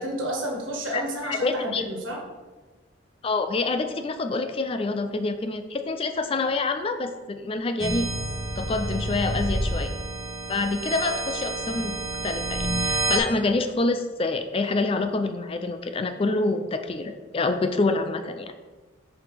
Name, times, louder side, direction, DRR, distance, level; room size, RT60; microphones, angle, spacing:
voice 1, 0.0-2.2, equal, 85° right, -1 dB, 1.5 m, -30 dB
voice 2, 0.9-1.8 3.2-8.1 8.6-9.9 10.5-11.9 12.2-18.5, left 3 dB, 30° left, 8 dB, 0.4 m, -27 dB
sound 1, 7.8-13.2, right 2 dB, 20° right, 0.9 m, -29 dB
7.0 x 4.9 x 3.4 m, 1.3 s
head